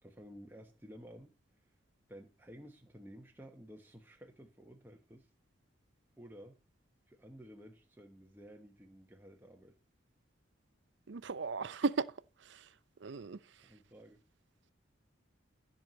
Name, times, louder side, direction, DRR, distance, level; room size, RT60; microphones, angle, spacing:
voice 1, 0.0-1.3 2.1-5.3 6.2-6.6 7.1-9.7 13.6-14.2, equal, 10° right, 1.0 m, -53 dB
voice 2, 11.1-12.1 12.5-12.7 13.0-13.4, right 4 dB, 65° right, 0.5 m, -35 dB
15.0 x 6.4 x 4.0 m
head